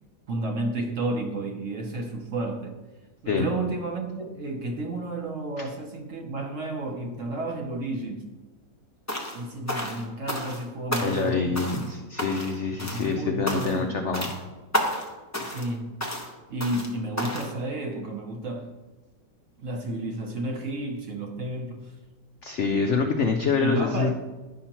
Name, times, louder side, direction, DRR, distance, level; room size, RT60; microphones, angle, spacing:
voice 1, 0.3-2.8 3.2-8.3 9.3-11.9 12.8-14.1 15.4-16.0 16.5-18.8 19.6-21.9 23.6-24.1, right 2 dB, 60° right, 3 dB, 0.9 m, -31 dB
sound 1, 9.1-9.4 9.7-10.6 10.9-11.3 11.5-11.9 12.2-12.5 12.8-13.1 13.5-13.8 14.1-14.4 14.7-15.1 15.3-15.7 16.0-16.3 16.6-16.9 17.2-17.5, left 1 dB, 20° left, 0.4 m, -31 dB
voice 2, 11.0-14.3 22.4-24.1, left 4 dB, 85° left, 4 dB, 0.6 m, -26 dB
11.0 x 5.6 x 2.9 m, 1.2 s
omnidirectional pair, 1.9 m